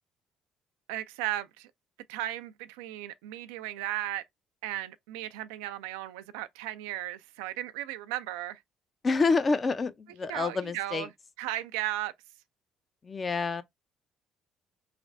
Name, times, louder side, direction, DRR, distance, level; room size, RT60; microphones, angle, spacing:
voice 1, 0.9-1.7 2.1-4.2 4.6-8.6 10.3-11.1 11.4-12.1, right 14 dB, 85° right, 0.3 m, -35 dB
voice 2, 9.0-11.1 13.0-13.6, left 4 dB, 35° left, 0.6 m, -27 dB
3.3 x 3.1 x 2.5 m
supercardioid pair, 65°, 0 cm